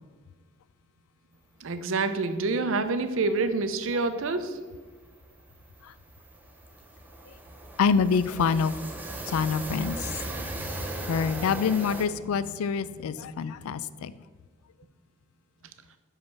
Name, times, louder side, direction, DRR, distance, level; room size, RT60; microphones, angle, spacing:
voice 1, 1.6-4.6, right 3 dB, 70° right, 9 dB, 0.6 m, -27 dB
sound 1, 3.7-3.8 4.0-4.2 4.5-12.1, right 2 dB, 10° right, 0.6 m, -38 dB
voice 2, 7.8-8.7 9.3-10.1 10.4-10.5 10.9-14.1, left 6 dB, 90° left, 16 dB, 0.3 m, -26 dB
5.8 x 5.2 x 5.9 m, 1.4 s
head